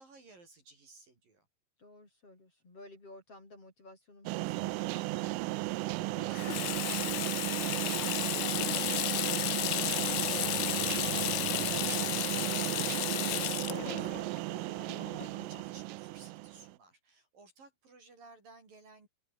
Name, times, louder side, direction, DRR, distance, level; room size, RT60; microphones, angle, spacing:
voice 1, 0.0-1.5 11.6-19.1, right 3 dB, 45° right, 7.1 m, -56 dB
voice 2, 1.8-10.2, left 2 dB, 30° left, 7.9 m, -54 dB
sound 1, 4.3-16.7, right 20 dB, 85° right, 3.3 m, -35 dB
Water tap faucet / Sink (filling or washing), 6.3-15.6, left 21 dB, 80° left, 2.6 m, -34 dB
sound 2, 9.3-13.3, right 11 dB, 70° right, 1.8 m, -52 dB
open air
omnidirectional pair, 5.9 m